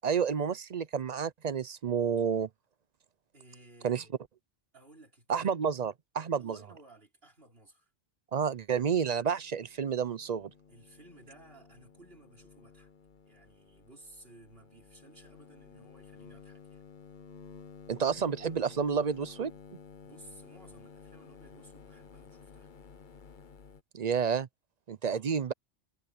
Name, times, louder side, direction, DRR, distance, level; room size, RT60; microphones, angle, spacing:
voice 1, 0.0-2.5 3.8-4.0 5.3-6.6 8.3-10.5 17.9-19.5 23.9-24.5 24.9-25.5, right 6 dB, 50° right, 0.6 m, -30 dB
voice 2, 3.3-4.2 4.7-5.7 6.4-7.9 10.7-12.9 13.2-16.8 20.0-22.7 25.1-25.5, right 2 dB, 65° right, 4.6 m, -57 dB
sound 1, 8.8-23.8, left 5 dB, 50° left, 1.1 m, -53 dB
omnidirectional pair, 1.1 m